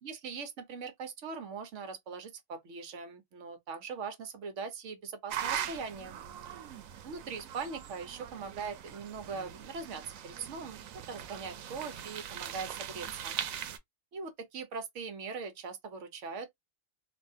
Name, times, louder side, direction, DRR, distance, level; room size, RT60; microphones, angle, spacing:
voice 1, 0.0-6.2 7.0-10.8 11.1-13.4 14.1-16.6, right 5 dB, 70° right, 1.1 m, -41 dB
sound 1, 5.3-13.8, right 9 dB, 90° right, 1.0 m, -41 dB
3.4 x 2.3 x 2.6 m
omnidirectional pair, 1.4 m